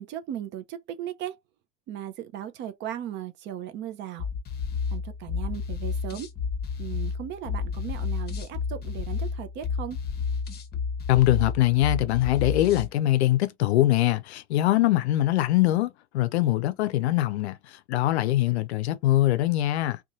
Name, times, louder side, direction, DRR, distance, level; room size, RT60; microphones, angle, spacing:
voice 1, 0.0-1.4 1.9-4.3 4.9-6.3 6.8-10.0, right 11 dB, 30° right, 0.4 m, -37 dB
sound 1, 4.2-12.9, left 5 dB, 25° left, 0.8 m, -31 dB
voice 2, 11.1-20.0, left 15 dB, 60° left, 0.5 m, -23 dB
2.6 x 2.3 x 2.7 m
figure-of-eight pair, 70°, 36 cm